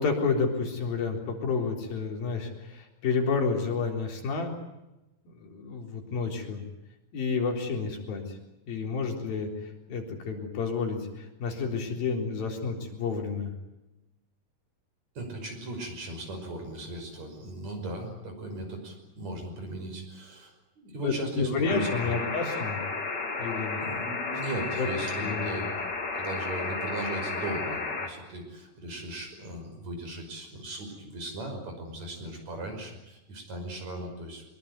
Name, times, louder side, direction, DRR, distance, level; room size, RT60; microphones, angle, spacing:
voice 1, 0.0-4.5 5.3-6.6 7.1-8.4 8.7-13.5 21.0-22.8 23.4-23.8 24.8-24.9 25.1-25.5, left 4 dB, 85° left, 2 dB, 5.6 m, -30 dB
voice 2, 15.2-22.1 23.8-25.7 26.1-34.4, right 2 dB, 50° right, 4 dB, 6.9 m, -38 dB
sound 1, 21.7-28.1, left 3 dB, 30° left, 3.0 m, -33 dB
23.5 x 22.5 x 9.3 m, 0.98 s
omnidirectional pair, 4.1 m